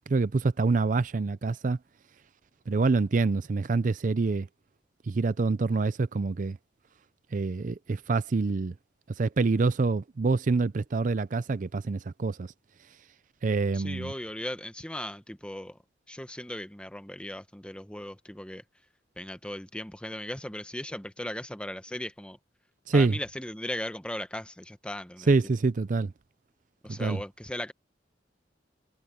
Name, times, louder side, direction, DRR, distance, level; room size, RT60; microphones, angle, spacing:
voice 1, 0.1-1.8 2.7-4.5 5.1-6.6 7.3-8.7 9.2-12.5 13.4-14.1 22.9-23.2 25.3-26.1 26.9-27.2, right 3 dB, 45° right, 0.5 m, -26 dB
voice 2, 13.7-15.8 16.1-18.6 19.2-22.4 22.9-25.3 26.8-27.7, left 1 dB, 5° left, 0.9 m, -37 dB
head